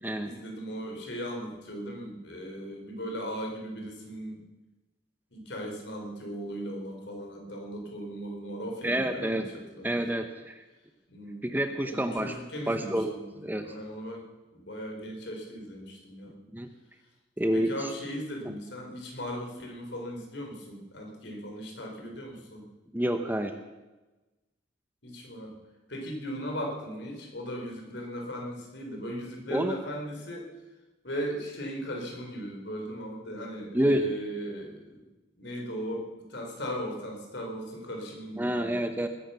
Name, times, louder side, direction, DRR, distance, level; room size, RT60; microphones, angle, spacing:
voice 1, 0.2-4.5 5.3-10.0 11.1-11.5 11.8-13.3 13.6-14.2 14.5-16.4 17.5-22.7 25.0-25.6 25.9-30.5 31.0-35.0 35.4-38.8, equal, 60° left, 1 dB, 4.1 m, -38 dB
voice 2, 8.8-9.5 9.8-10.6 11.4-12.3 12.7-13.2 13.4-13.7 16.5-16.7 17.4-17.9 22.9-23.6 29.5-29.8 33.7-34.1 38.4-39.1, right 1 dB, 10° right, 7 dB, 0.8 m, -28 dB
20.5 x 10.0 x 6.9 m, 1.1 s
head